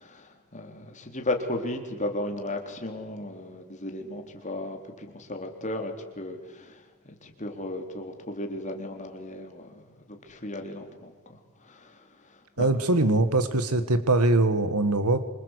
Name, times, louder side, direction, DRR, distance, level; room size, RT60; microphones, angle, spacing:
voice 1, 0.0-6.8 7.2-12.0 12.6-12.7, left 1 dB, 35° left, 3 dB, 3.7 m, -35 dB
voice 2, 12.6-15.2, right 2 dB, 85° right, 11 dB, 1.8 m, -22 dB
26.5 x 26.0 x 8.3 m, 1.3 s
head